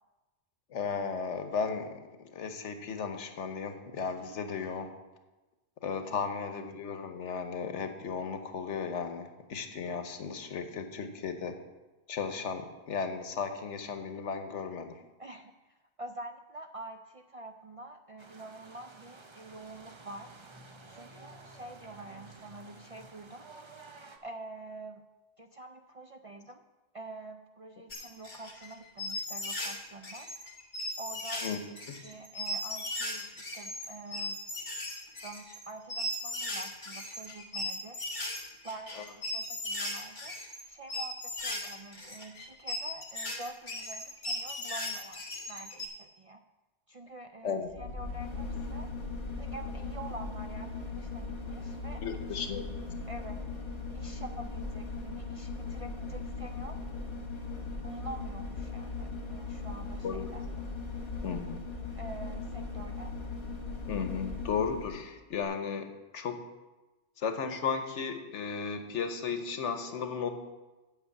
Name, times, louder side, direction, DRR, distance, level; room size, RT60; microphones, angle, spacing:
voice 1, 0.7-4.9 5.8-11.6 12.1-15.0 31.4-31.6 31.9-32.0 47.4-47.7 52.0-52.6 60.0-60.3 61.2-61.6 63.9-66.4 67.2-70.3, left 6 dB, 90° left, 7 dB, 1.3 m, -35 dB
voice 2, 15.2-20.3 20.9-23.5 24.2-25.0 25.4-26.6 26.9-30.3 31.0-34.4 35.2-38.1 38.6-40.4 40.7-46.4 46.9-48.9 49.4-52.5 53.1-53.4 53.9-56.8 57.8-60.4 62.0-63.2, right 2 dB, 55° right, 6 dB, 0.3 m, -46 dB
sound 1, 18.2-24.2, right 3 dB, 30° right, 0.7 m, -52 dB
sound 2, 27.9-29.8 30.0-45.9, left 1 dB, 45° left, 1.6 m, -37 dB
sound 3, 47.7-65.1 65.4-65.5, left 3 dB, 65° left, 2.3 m, -38 dB
8.2 x 6.6 x 8.2 m, 1.1 s
omnidirectional pair, 1.2 m